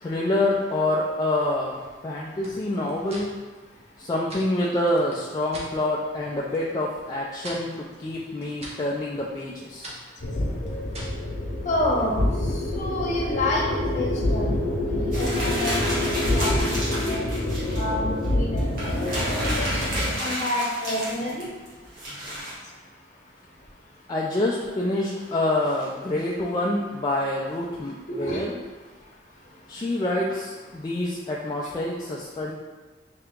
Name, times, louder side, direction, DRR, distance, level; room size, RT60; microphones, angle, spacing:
voice 1, 0.0-3.3 4.0-9.9 24.1-28.5 29.7-32.5, left 1 dB, 20° left, -5 dB, 0.3 m, -27 dB
sound 1, 2.4-5.7 6.1-6.7 7.0-11.3, right 1 dB, 35° right, 0.8 m, -44 dB
sound 2, 10.2-20.2, left 1 dB, 75° left, 0.8 m, -26 dB
voice 2, 11.7-12.2 12.7-14.6 14.9-17.2 17.7-21.4 28.2-28.4, left 1 dB, 40° left, -3 dB, 0.8 m, -29 dB
sound 3, 15.1-17.8 18.2-18.3 18.6-22.5, right 1 dB, 55° right, 1.3 m, -31 dB
3.3 x 2.8 x 3.6 m, 1.3 s
head